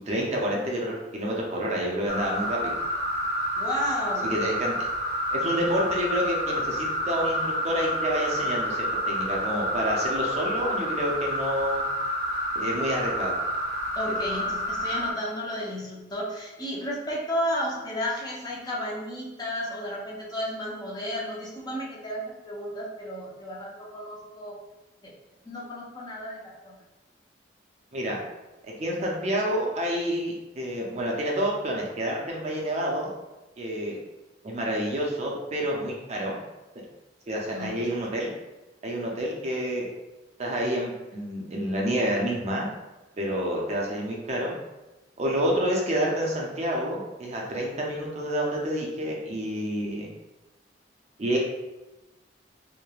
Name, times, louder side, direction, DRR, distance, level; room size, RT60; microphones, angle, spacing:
voice 1, 0.1-2.8 4.2-4.9 5.3-11.8 12.6-13.3 27.9-28.2 28.6-33.1 33.6-34.0 34.4-36.4 37.3-38.3 38.8-39.9 40.4-42.7 43.2-44.5 45.2-50.1 51.2-51.4, equal, 35° right, -2 dB, 0.4 m, -28 dB
sound 1, 2.1-15.1, equal, 40° left, 0.9 m, -29 dB
voice 2, 3.6-4.3 6.7-6.8 14.0-24.6 25.0-25.1 25.4-26.8 37.5-37.9, equal, 20° left, -5 dB, 0.5 m, -33 dB
3.0 x 2.1 x 2.3 m, 1.1 s
head